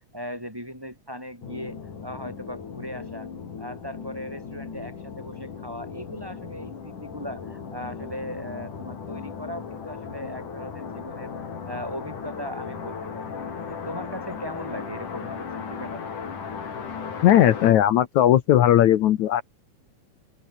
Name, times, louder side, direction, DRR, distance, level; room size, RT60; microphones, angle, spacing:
voice 1, 0.1-3.3 3.6-11.3 11.6-13.3 13.7-16.2, equal, 5° right, 4.8 m, -38 dB
sound 1, 1.4-17.7, left 6 dB, 90° left, 5.4 m, -37 dB
voice 2, 17.2-19.4, left 12 dB, 70° left, 2.4 m, -17 dB
open air
omnidirectional pair, 3.5 m